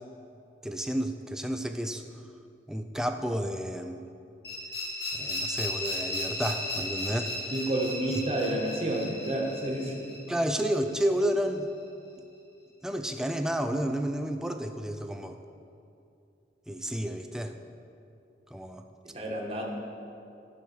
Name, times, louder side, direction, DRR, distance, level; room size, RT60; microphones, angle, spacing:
voice 1, 0.6-2.0 2.7-4.0 5.1-7.3 10.3-11.7 12.8-15.4 16.7-17.5 18.5-18.8, equal, 5° right, 6 dB, 0.4 m, -31 dB
sound 1, 4.4-11.3, left 1 dB, 65° left, 2.5 m, -35 dB
voice 2, 7.5-10.0 19.1-19.6, right 1 dB, 35° right, -1 dB, 1.3 m, -30 dB
9.8 x 6.4 x 5.9 m, 2.6 s
head